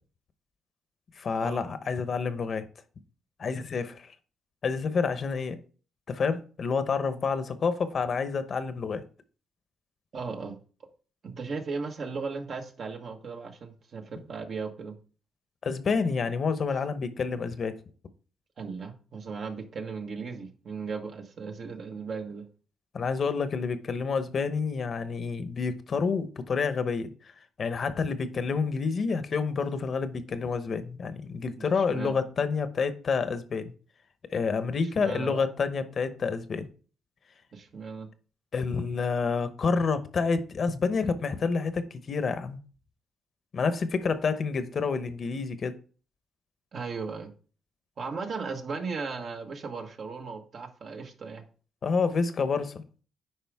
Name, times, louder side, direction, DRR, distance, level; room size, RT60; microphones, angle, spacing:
voice 1, 1.2-2.6 3.4-4.1 4.6-5.6 6.1-9.0 15.6-17.8 22.9-27.1 27.6-33.7 34.3-36.7 38.5-42.6 43.5-45.7 51.8-52.8, left 5 dB, 50° left, 0.9 m, -28 dB
voice 2, 10.1-10.6 11.2-15.0 18.6-22.4 31.6-32.2 35.0-35.4 37.5-38.1 46.7-47.3 48.0-51.4, right 4 dB, 55° right, 1.4 m, -36 dB
9.0 x 5.0 x 3.5 m
cardioid pair, 90°, 0 cm